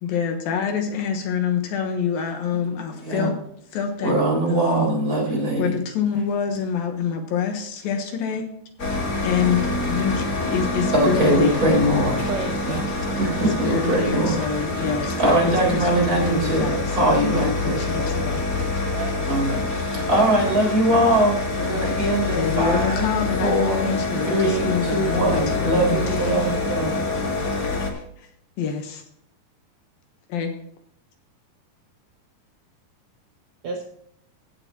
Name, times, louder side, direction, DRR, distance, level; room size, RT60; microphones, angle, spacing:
voice 1, 0.0-3.4 3.7-4.1 4.5-4.9 5.6-8.5 9.2-11.6 13.4-18.4 22.3-26.6 27.6-28.3 28.6-29.0 30.3-30.5, left 7 dB, 70° left, 5 dB, 2.8 m, -26 dB
voice 2, 2.9-3.3 4.0-5.6 10.9-12.2 12.7-12.8 13.2-14.4 15.2-17.8 19.3-23.1 23.4-23.9 24.3-27.0, right 1 dB, 25° right, 0 dB, 4.0 m, -22 dB
sound 1, 8.8-27.9, left 2 dB, 35° left, 1.4 m, -26 dB
voice 3, 12.3-12.8 16.7-17.2 17.7-18.2 18.8-19.3 33.6-33.8, right 5 dB, 80° right, 2 dB, 1.5 m, -33 dB
16.5 x 7.7 x 3.0 m, 0.70 s
omnidirectional pair, 4.6 m